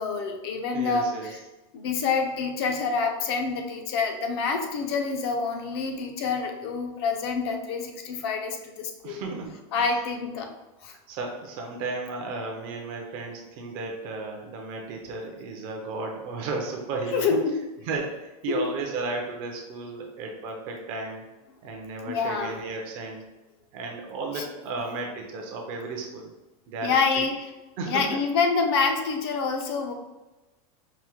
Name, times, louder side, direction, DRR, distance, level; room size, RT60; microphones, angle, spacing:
voice 1, 0.0-1.4 1.7-9.2 9.7-10.5 10.8-11.0 17.1-17.7 18.5-18.7 22.0-22.6 24.3-24.4 26.8-27.5 27.8-29.9, left 5 dB, 45° left, 4 dB, 0.4 m, -27 dB
voice 2, 0.7-1.5 9.0-10.0 11.1-17.4 17.8-21.2 21.6-23.2 23.7-26.3 26.7-27.2 27.8-28.2, right 3 dB, 30° right, 1 dB, 0.4 m, -34 dB
4.6 x 2.0 x 2.8 m, 1.1 s
supercardioid pair, 175°, 19 cm